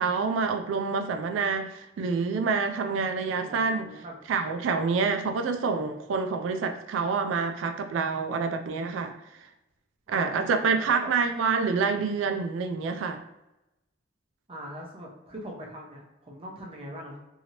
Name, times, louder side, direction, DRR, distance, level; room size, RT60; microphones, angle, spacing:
voice 1, 0.0-3.9 4.3-9.1 10.1-13.2, right 5 dB, 70° right, 6 dB, 0.3 m, -27 dB
voice 2, 3.2-4.1 10.1-11.1 14.5-17.2, equal, 30° right, -1 dB, 0.6 m, -42 dB
2.9 x 2.7 x 2.8 m, 0.95 s
head